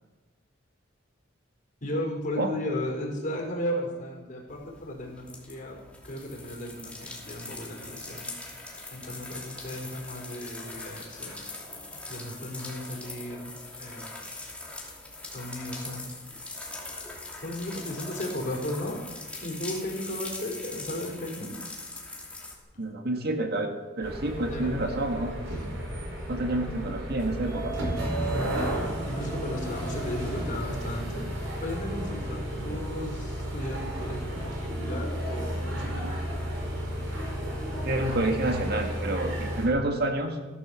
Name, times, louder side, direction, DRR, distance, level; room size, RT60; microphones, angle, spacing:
voice 1, 1.8-5.8 6.0-8.3 8.9-11.4 12.1-13.5 13.8-14.1 15.3-16.2 17.4-19.0 19.4-21.5 24.5-24.9 25.6-25.7 28.2-36.1, left 1 dB, 40° left, 0 dB, 4.7 m, -35 dB
sound 1, 4.5-22.5, left 2 dB, 5° left, 2.7 m, -41 dB
voice 2, 22.8-23.7 24.0-25.3 26.3-27.7 37.8-40.4, right 2 dB, 55° right, 4 dB, 1.9 m, -28 dB
sound 2, 24.0-39.7, right 1 dB, 70° right, 4.8 m, -33 dB
16.0 x 11.5 x 7.2 m, 1.2 s
head